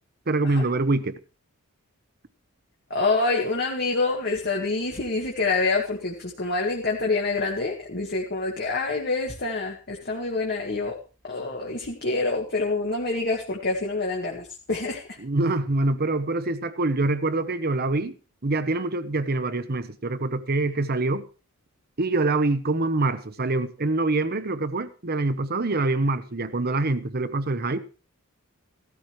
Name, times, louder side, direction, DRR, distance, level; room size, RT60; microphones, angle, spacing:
voice 1, 0.3-1.2 15.2-18.1 18.4-21.3 22.0-27.8, right 2 dB, 45° right, 1.0 m, -25 dB
voice 2, 2.9-11.0 11.3-15.2, left 3 dB, 45° left, 2.0 m, -26 dB
16.0 x 13.0 x 3.2 m
head